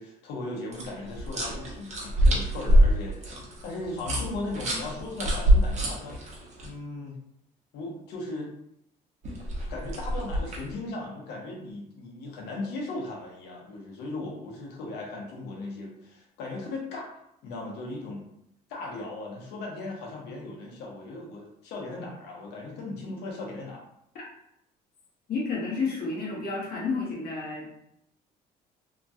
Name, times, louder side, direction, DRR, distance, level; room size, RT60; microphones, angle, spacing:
voice 1, 0.0-6.2 6.6-7.2 7.7-8.5 9.7-17.1 17.4-18.2 18.7-23.8, left 2 dB, 80° left, -1 dB, 1.0 m, -37 dB
sound 1, 0.7-6.7 9.2-10.7, equal, 45° right, 0.9 m, -25 dB
voice 2, 25.3-27.7, left 4 dB, 65° left, -4 dB, 1.2 m, -31 dB
2.9 x 2.3 x 2.7 m, 0.77 s
cardioid pair, 110°, 17 cm